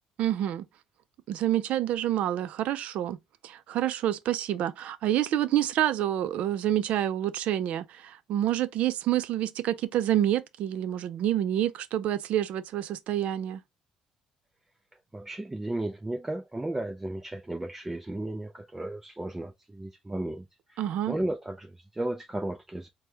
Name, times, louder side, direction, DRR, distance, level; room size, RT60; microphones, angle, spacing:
voice 1, 0.2-0.7 1.3-3.2 3.4-13.6 20.8-21.1, right 12 dB, 70° right, 0.5 m, -28 dB
voice 2, 14.9-22.9, right 1 dB, 15° right, 0.5 m, -34 dB
4.4 x 2.2 x 3.3 m
cardioid pair, 95°, 2 cm